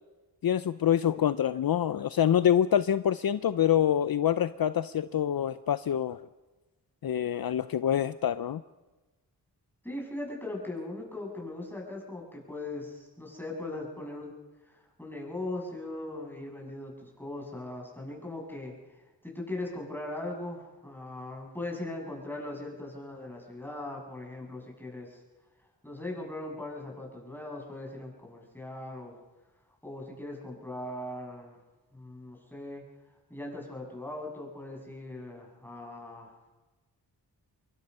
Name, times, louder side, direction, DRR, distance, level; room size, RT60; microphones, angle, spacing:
voice 1, 0.4-6.3 7.0-8.6, left 10 dB, 60° left, 13 dB, 0.6 m, -26 dB
voice 2, 9.8-14.3 14.6-25.2 25.8-29.2 29.8-31.6 31.9-32.8 33.3-36.4, left 2 dB, 5° left, -1 dB, 7.8 m, -39 dB
25.5 x 22.5 x 5.6 m, 1.2 s
cardioid pair, 65°, 41 cm